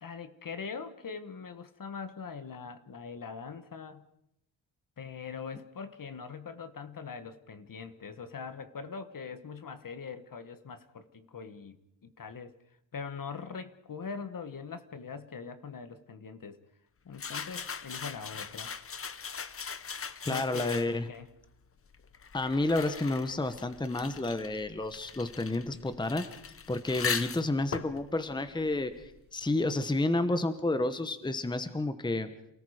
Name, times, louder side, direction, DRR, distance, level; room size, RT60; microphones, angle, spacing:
voice 1, 0.0-4.0 5.0-11.8 12.0-12.5 12.9-16.6 17.0-18.7 20.3-21.3, left 5 dB, 45° left, 11 dB, 1.4 m, -42 dB
sound 1, 17.1-21.2 21.9-29.3, left 6 dB, 30° left, 0.8 m, -40 dB
voice 2, 20.3-21.0 22.3-26.2 26.7-32.3, left 2 dB, 10° left, 10 dB, 1.1 m, -30 dB
28.5 x 18.5 x 5.0 m, 0.78 s
wide cardioid pair, 150°, 46 cm